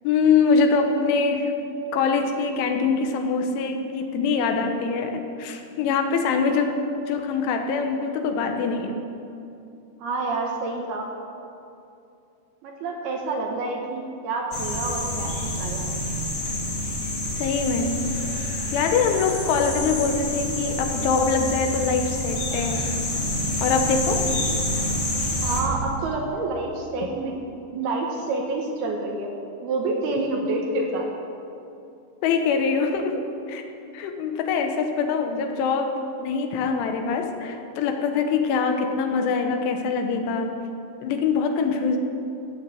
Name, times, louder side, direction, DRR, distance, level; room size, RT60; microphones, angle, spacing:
voice 1, 0.1-1.5 1.9-9.0 17.4-18.0 18.7-22.9 23.6-24.3 32.2-33.6 33.9-40.6 41.0-42.0, left 5 dB, 85° left, 5 dB, 3.5 m, -24 dB
voice 2, 10.0-11.1 12.6-15.9 25.4-27.4 27.7-29.3 29.6-31.1, right 2 dB, 70° right, 1 dB, 2.8 m, -28 dB
sound 1, 14.5-25.6, left 1 dB, 35° left, 1.7 m, -28 dB
15.0 x 9.0 x 7.7 m, 2.7 s
omnidirectional pair, 5.5 m